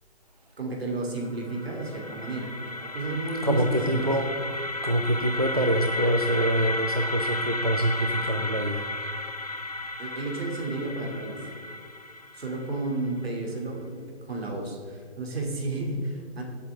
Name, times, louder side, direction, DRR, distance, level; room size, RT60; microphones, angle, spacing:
voice 1, 0.6-4.1 10.0-11.5 12.3-16.4, right 2 dB, 60° right, 0 dB, 2.8 m, -32 dB
sound 1, 1.2-13.2, left 2 dB, 35° left, 0.4 m, -33 dB
voice 2, 3.4-4.6 4.8-8.9, right 1 dB, 35° right, 4 dB, 0.4 m, -25 dB
16.0 x 7.9 x 3.6 m, 2.1 s
hypercardioid pair, 180°, 34 cm